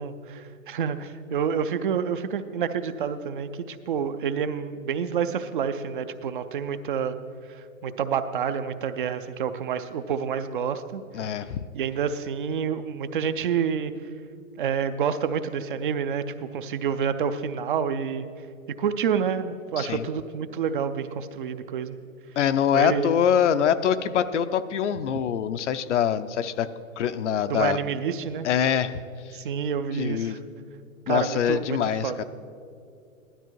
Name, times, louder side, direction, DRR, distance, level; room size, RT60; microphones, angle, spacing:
voice 1, 0.0-7.1 7.5-11.0 11.7-13.9 14.6-18.3 18.8-22.0 22.7-23.1 27.5-28.5 29.3-30.4 31.1-32.2, right 7 dB, 40° right, 11 dB, 0.5 m, -28 dB
voice 2, 11.1-11.6 19.8-20.0 22.4-26.7 27.0-27.8 28.4-28.9 30.0-30.4 31.1-32.2, left 9 dB, 60° left, 12 dB, 0.6 m, -24 dB
16.0 x 12.0 x 4.6 m, 2.4 s
hypercardioid pair, 145°, 41 cm